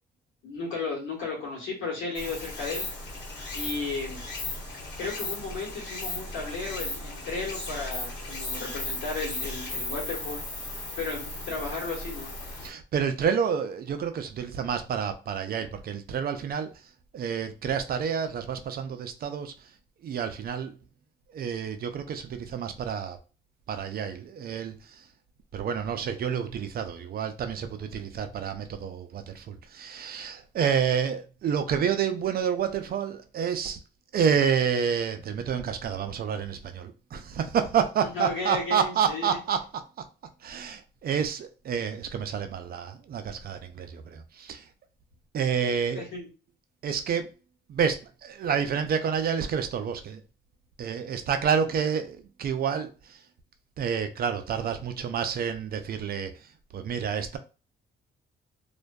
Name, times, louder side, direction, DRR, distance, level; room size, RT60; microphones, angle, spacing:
voice 1, 0.4-2.9 3.5-4.2 5.0-10.4 11.0-12.3 38.1-39.4 45.9-46.3, left 3 dB, 90° left, 1.3 m, -34 dB
Stream, 2.1-12.7, left 2 dB, 60° left, 1.1 m, -36 dB
voice 2, 12.6-16.7 17.1-19.7 20.0-20.8 21.3-23.2 23.7-25.1 25.5-33.8 34.1-39.8 40.4-44.7 45.3-46.0 46.8-47.3 47.7-50.2 50.8-53.2 53.8-57.4, right 7 dB, 50° right, 0.4 m, -29 dB
2.5 x 2.2 x 2.2 m
cardioid pair, 90°, 20 cm